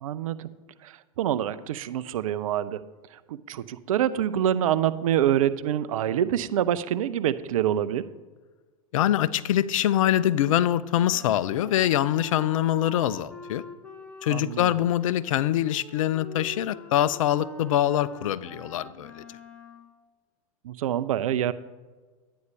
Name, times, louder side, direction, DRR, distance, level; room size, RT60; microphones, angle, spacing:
voice 1, 0.0-0.5 0.8-2.8 3.1-8.0 14.3-14.7 20.6-21.5, right 11 dB, 65° right, 14 dB, 0.6 m, -26 dB
voice 2, 8.9-13.6 14.2-19.4, left 12 dB, 65° left, 16 dB, 0.5 m, -24 dB
Wind instrument woodwind instrument, 10.9-19.9, equal, 5° left, 0.9 m, -45 dB
11.0 x 9.4 x 3.3 m, 1.3 s
hypercardioid pair, 105°, 19 cm